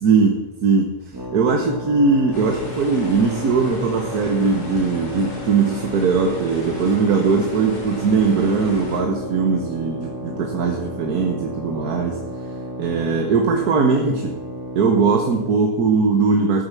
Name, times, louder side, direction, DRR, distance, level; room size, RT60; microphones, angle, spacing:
voice 1, 0.0-0.9 1.3-12.2 12.8-14.3 14.7-16.6, right 4 dB, 75° right, 3 dB, 1.7 m, -20 dB
sound 1, 1.1-15.6, equal, 15° right, 1.6 m, -33 dB
sound 2, 2.3-9.0, left 1 dB, 80° left, 3.9 m, -38 dB
13.0 x 6.6 x 7.5 m, 1.1 s
omnidirectional pair, 1.6 m